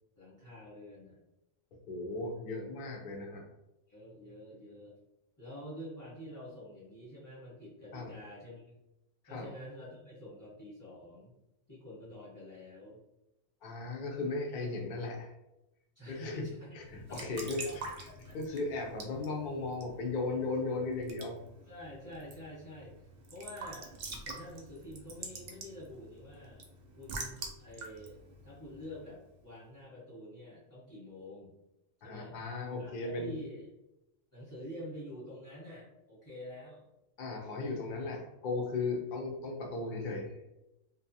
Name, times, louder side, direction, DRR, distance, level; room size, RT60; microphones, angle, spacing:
voice 1, 0.2-1.2 3.9-4.9 5.4-8.8 9.3-11.3 11.7-13.0 15.9-17.8 18.0-18.4 21.6-22.9 23.3-28.2 28.4-31.5 32.0-32.3 32.8-33.7 34.3-36.9, equal, 15° left, -9 dB, 0.8 m, -47 dB
voice 2, 1.9-3.5 7.9-8.1 9.2-9.5 13.6-15.3 16.1-16.4 16.9-17.9 18.3-21.4 32.0-33.3 37.2-40.3, left 3 dB, 65° left, 1 dB, 0.5 m, -36 dB
Raindrop / Drip / Trickle dribble, 16.9-29.3, right 3 dB, 60° right, 0.6 m, -47 dB
2.6 x 2.2 x 2.6 m, 0.91 s
omnidirectional pair, 1.4 m